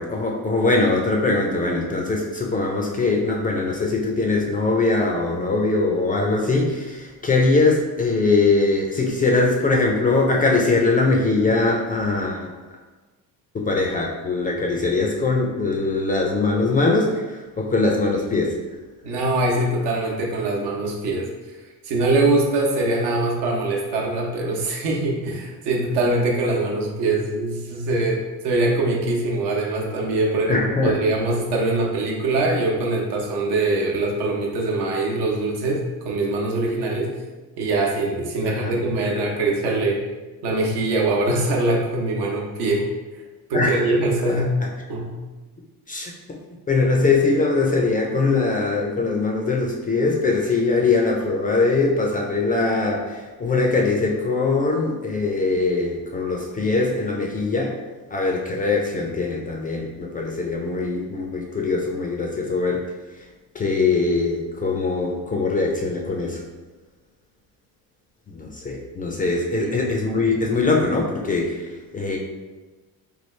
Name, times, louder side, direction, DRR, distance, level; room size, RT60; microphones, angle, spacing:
voice 1, 0.0-12.5 13.5-18.6 30.5-31.0 38.4-38.8 43.5-43.8 44.3-44.5 45.9-46.1 46.7-57.8 58.1-62.9 63.2-63.3 63.5-66.4 68.3-72.2, left 3 dB, 20° left, 0 dB, 0.3 m, -22 dB
voice 2, 19.0-21.3 21.8-37.1 37.6-40.0 40.4-42.8 43.5-44.5 44.9-45.2 69.6-69.8, right 2 dB, 80° right, -1 dB, 0.9 m, -23 dB
3.2 x 2.3 x 3.1 m, 1.2 s
cardioid pair, 105°, 41 cm